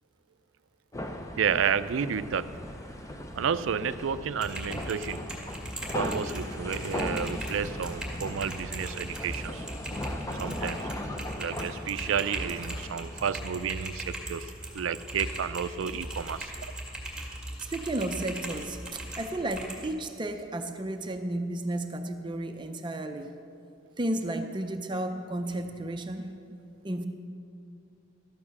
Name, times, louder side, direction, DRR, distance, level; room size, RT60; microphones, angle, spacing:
sound 1, 0.9-13.7, left 1 dB, 15° left, 0.7 m, -38 dB
voice 1, 1.4-2.6 3.4-5.3 5.9-9.6 10.4-10.9 11.4-16.5, right 7 dB, 75° right, 14 dB, 0.4 m, -31 dB
Typing, 4.3-19.9, right 1 dB, 5° right, 1.8 m, -39 dB
voice 2, 17.6-23.3 24.0-26.4 26.8-27.1, right 1 dB, 25° right, 6 dB, 0.6 m, -33 dB
13.0 x 8.7 x 6.0 m, 2.5 s
head